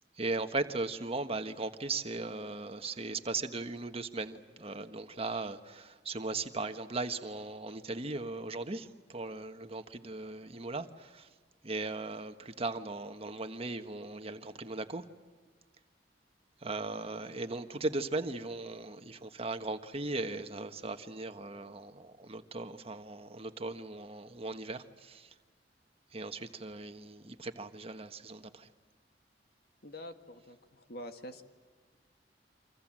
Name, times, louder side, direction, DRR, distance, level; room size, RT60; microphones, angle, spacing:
voice 1, 0.2-11.3 11.6-15.0 16.6-25.3 26.1-28.7, right 3 dB, 35° right, 1.4 m, -38 dB
voice 2, 29.8-31.4, left 1 dB, 65° left, 1.9 m, -46 dB
29.0 x 25.0 x 7.6 m
head